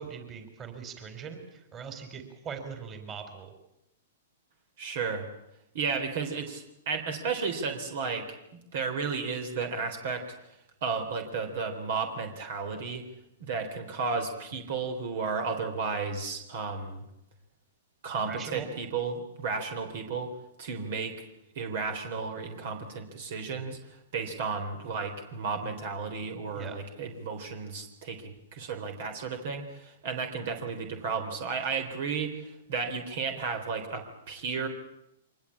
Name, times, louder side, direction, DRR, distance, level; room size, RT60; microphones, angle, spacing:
voice 1, 0.0-3.5 18.2-18.7 26.5-26.8, right 6 dB, 25° right, 7 dB, 4.3 m, -41 dB
voice 2, 4.8-5.3 5.7-8.3 8.7-10.3 10.8-13.0 13.4-17.0 18.0-20.3 20.6-21.2 21.6-34.7, right 5 dB, 60° right, 6 dB, 3.6 m, -33 dB
24.5 x 20.0 x 8.5 m, 0.85 s
hypercardioid pair, 125°, 0 cm